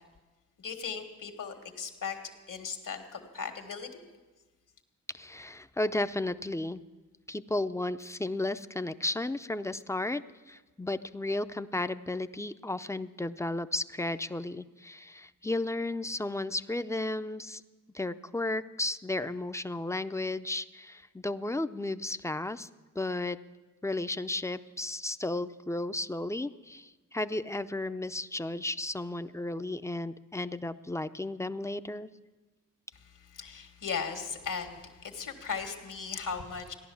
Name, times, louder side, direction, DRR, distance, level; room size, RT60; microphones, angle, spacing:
voice 1, 0.6-2.2 2.5-3.9 33.1-36.7, left 6 dB, 70° left, 5 dB, 1.8 m, -37 dB
voice 2, 5.1-6.8 7.3-17.6 17.9-22.7 23.0-23.4 23.8-32.1, left 2 dB, 10° left, 12 dB, 0.5 m, -34 dB
15.5 x 11.0 x 7.0 m, 1.2 s
cardioid pair, 75°, 33 cm